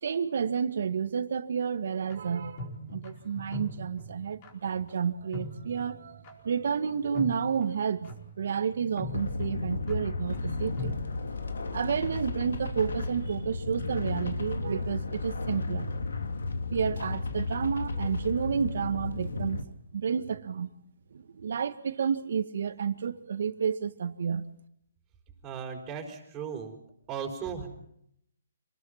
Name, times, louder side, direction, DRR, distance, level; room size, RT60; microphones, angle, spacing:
voice 1, 0.0-11.0 11.7-15.9 16.7-19.6 19.9-20.7 21.1-24.4, right 7 dB, 65° right, 1.8 m, -30 dB
sound 1, 2.1-11.1, left 1 dB, 30° left, 4.6 m, -42 dB
sound 2, 9.0-19.6, left 3 dB, 85° left, 3.1 m, -33 dB
voice 2, 25.4-26.8 27.1-27.7, right 6 dB, 15° right, 4.8 m, -36 dB
27.0 x 20.0 x 5.9 m
hypercardioid pair, 155°, 0 cm